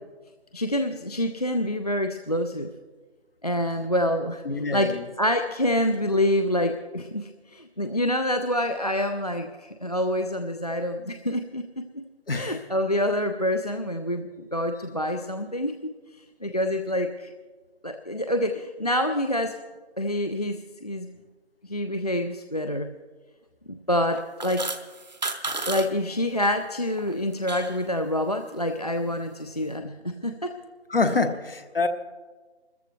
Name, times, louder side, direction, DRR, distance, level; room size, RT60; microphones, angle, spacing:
voice 1, 0.5-2.7 3.4-12.0 12.3-15.9 16.4-17.3 17.8-19.6 20.0-21.1 21.6-22.9 23.7-24.7 25.7-30.6, left 1 dB, 40° left, 7 dB, 0.4 m, -27 dB
voice 2, 4.5-5.0 12.3-12.6 30.9-31.9, left 3 dB, 60° left, 9 dB, 1.1 m, -25 dB
sound 1, 24.1-25.9 26.1-26.5 26.9-27.8, right 3 dB, 40° right, 0.8 m, -32 dB
22.0 x 14.0 x 3.1 m, 1.4 s
figure-of-eight pair, 160°, 33 cm